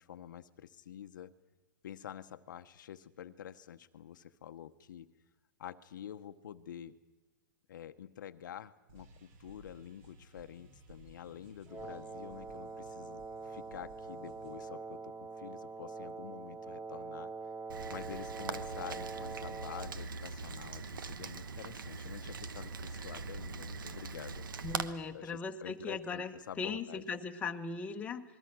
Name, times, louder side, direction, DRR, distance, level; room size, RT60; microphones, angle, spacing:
voice 1, 0.0-1.3 1.8-5.1 5.6-7.0 7.7-17.3 17.9-24.5 25.1-27.0, left 10 dB, 70° left, 10 dB, 1.0 m, -48 dB
sound 1, 8.9-14.6, right 2 dB, 45° right, 3.3 m, -58 dB
Wind instrument woodwind instrument, 11.7-20.0, right 4 dB, 15° right, 1.2 m, -44 dB
Rain, 17.7-24.9, right 5 dB, 85° right, 1.3 m, -42 dB
voice 2, 24.6-28.2, left 4 dB, 10° left, 4 dB, 1.3 m, -39 dB
28.0 x 21.5 x 6.2 m, 1.1 s
hypercardioid pair, 145°, 11 cm